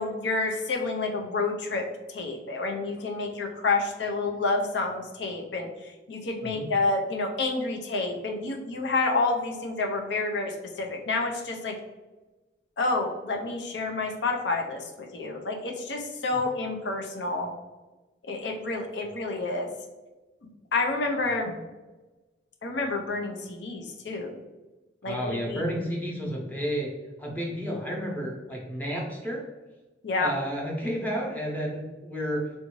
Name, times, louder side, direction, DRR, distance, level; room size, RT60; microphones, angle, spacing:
voice 1, 0.0-5.7 6.1-11.8 12.8-17.5 18.3-19.7 20.7-21.5 22.6-24.4 25.0-25.7 30.0-30.3, left 3 dB, 75° left, 2 dB, 0.6 m, -29 dB
voice 2, 25.0-26.9 27.2-29.4 30.2-32.5, equal, 10° left, -3 dB, 0.7 m, -31 dB
3.4 x 2.6 x 3.0 m, 1.2 s
head